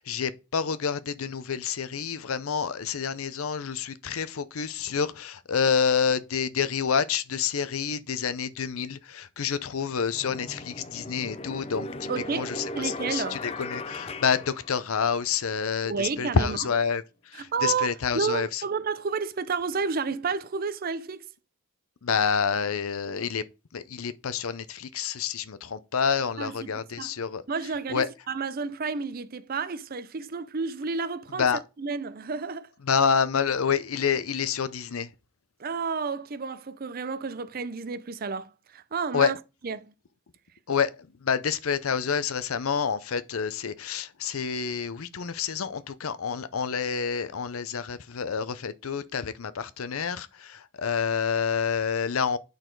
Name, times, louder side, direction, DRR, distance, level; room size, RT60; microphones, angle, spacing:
voice 1, 0.0-11.9 12.3-18.6 22.0-23.4 23.7-27.4 27.9-28.1 31.4-31.6 32.8-35.1 39.1-39.3 40.7-52.4, left 6 dB, 75° left, 0.6 m, -28 dB
sound 1, 9.4-9.5 10.1-15.3, left 2 dB, 30° left, 0.5 m, -38 dB
voice 2, 12.1-13.4 15.9-16.6 17.4-17.9 18.1-21.3 26.4-26.7 27.0-27.1 27.5-31.5 31.8-32.7 35.6-39.4 39.6-39.9, right 5 dB, 40° right, 0.5 m, -31 dB
9.0 x 4.0 x 4.6 m
head